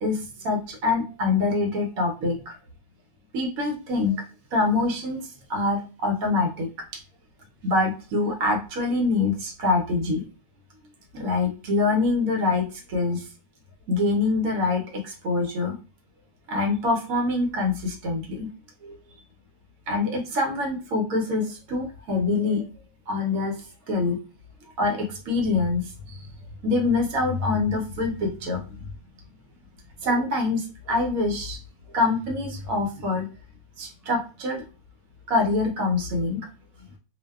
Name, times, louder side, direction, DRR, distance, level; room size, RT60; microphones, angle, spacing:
voice 1, 0.0-2.6 3.3-4.2 4.5-6.7 7.6-10.2 11.1-13.3 13.9-15.8 16.5-18.5 18.8-19.0 19.9-22.6 23.1-23.6 23.9-24.2 24.8-26.3 26.6-28.8 30.0-31.6 31.9-33.3 33.8-34.6 35.3-36.5, left 3 dB, 65° right, 2 dB, 1.0 m, -25 dB
2.6 x 2.1 x 2.2 m, 0.34 s
omnidirectional pair, 1.7 m